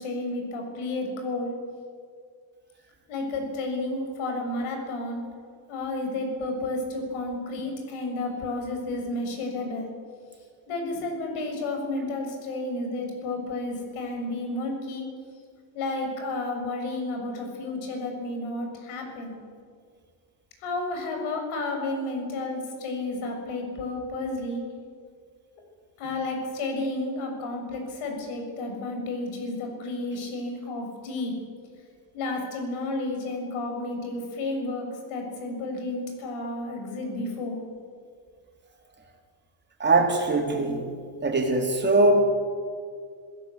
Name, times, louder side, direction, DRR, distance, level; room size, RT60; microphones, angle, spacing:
voice 1, 0.0-1.5 3.1-5.2 5.7-9.9 10.7-15.1 15.7-19.4 20.6-24.7 26.0-31.3 32.1-37.6, left 2 dB, 85° left, 3 dB, 6.7 m, -31 dB
voice 2, 39.8-40.9 41.2-42.2, right 2 dB, 20° right, 2 dB, 3.8 m, -21 dB
26.5 x 16.5 x 8.3 m, 2.1 s
cardioid pair, 145°, 49 cm